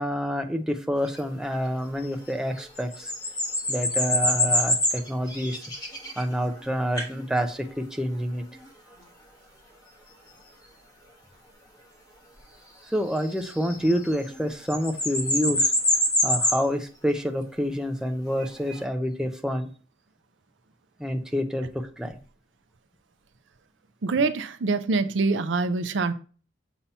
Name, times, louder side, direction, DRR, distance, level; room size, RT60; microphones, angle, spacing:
voice 1, 0.0-3.1 3.7-5.6 6.2-8.4 12.9-15.7 16.2-19.7 21.0-22.2, equal, 5° right, 4 dB, 0.6 m, -28 dB
sound 1, 1.1-1.2 2.6-6.6 7.0-7.2 8.6-8.7 13.1-14.4 14.7-16.7 18.4-18.8, left 1 dB, 20° left, 1.2 m, -25 dB
voice 2, 24.0-26.1, right 3 dB, 85° right, 10 dB, 0.5 m, -25 dB
7.1 x 2.8 x 5.4 m, 0.38 s
head